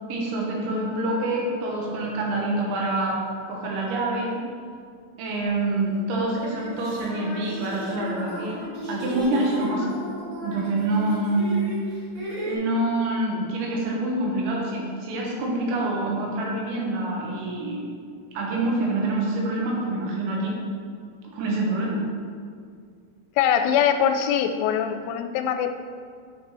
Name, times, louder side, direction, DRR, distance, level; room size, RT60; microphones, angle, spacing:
voice 1, 0.1-3.2 3.5-4.4 5.2-9.9 10.4-11.6 12.5-17.9 18.3-20.6 21.3-22.0, right 2 dB, 75° right, -3 dB, 3.3 m, -26 dB
sound 1, 5.4-5.5 6.2-12.6, equal, 55° right, 1.4 m, -35 dB
voice 2, 23.4-25.8, left 8 dB, 85° left, 7 dB, 3.0 m, -22 dB
9.4 x 4.3 x 4.3 m, 2.2 s
omnidirectional pair, 5.5 m